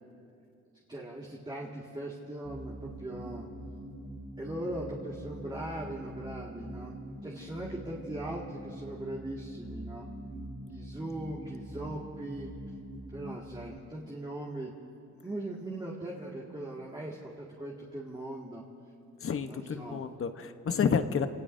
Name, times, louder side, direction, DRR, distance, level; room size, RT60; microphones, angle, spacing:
voice 1, 0.9-3.5 4.4-6.9 7.2-10.1 10.6-12.5 13.1-14.7 15.2-18.6 19.4-20.1, right 1 dB, 15° right, -4 dB, 2.1 m, -40 dB
sound 1, 2.4-13.8, right 1 dB, 50° right, 2.3 m, -44 dB
voice 2, 19.2-21.3, left 6 dB, 45° left, 8 dB, 1.1 m, -30 dB
27.0 x 19.0 x 2.7 m, 2.7 s
cardioid pair, 90°, 30 cm